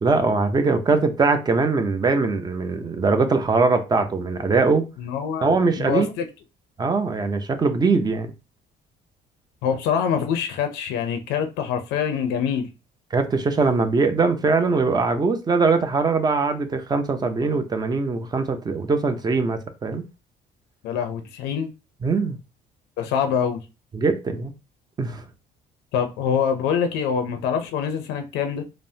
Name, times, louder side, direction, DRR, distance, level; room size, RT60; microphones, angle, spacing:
voice 1, 0.0-4.9 5.4-6.1 6.8-8.3 13.1-20.0 22.0-22.4 23.9-24.5 25.0-25.2, right 4 dB, 25° right, 0.5 m, -21 dB
voice 2, 5.0-6.3 9.6-12.7 20.8-21.7 23.0-23.6 25.9-28.6, left 7 dB, 90° left, 0.5 m, -25 dB
3.3 x 2.0 x 2.7 m
cardioid pair, 110°, 17 cm